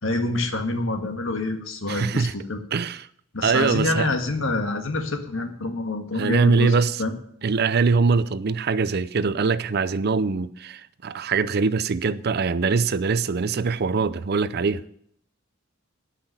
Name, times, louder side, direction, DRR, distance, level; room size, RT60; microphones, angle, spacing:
voice 1, 0.0-2.6 3.3-7.1, left 2 dB, 75° left, 1.7 m, -27 dB
voice 2, 1.9-2.3 2.7-3.1 3.4-4.1 6.2-7.0 7.4-14.8, right 4 dB, 50° right, 0.5 m, -23 dB
11.5 x 5.8 x 9.1 m
head